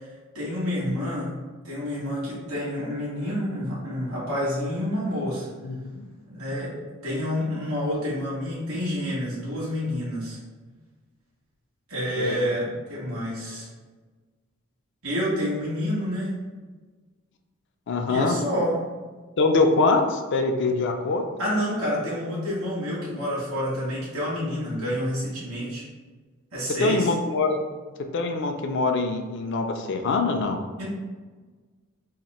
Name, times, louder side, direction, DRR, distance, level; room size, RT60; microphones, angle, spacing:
voice 1, 0.3-1.4 1.6-5.5 6.3-6.7 7.0-10.4 11.9-13.7 15.0-16.3 18.1-18.8 21.4-25.8 26.5-27.1 30.8-30.9, equal, 70° right, -7 dB, 1.2 m, -28 dB
voice 2, 5.6-6.0 12.2-12.4 17.9-18.4 19.4-21.2 26.8-27.6 28.1-30.6, left 3 dB, 55° left, 5 dB, 0.4 m, -23 dB
2.9 x 2.5 x 4.2 m, 1.4 s
head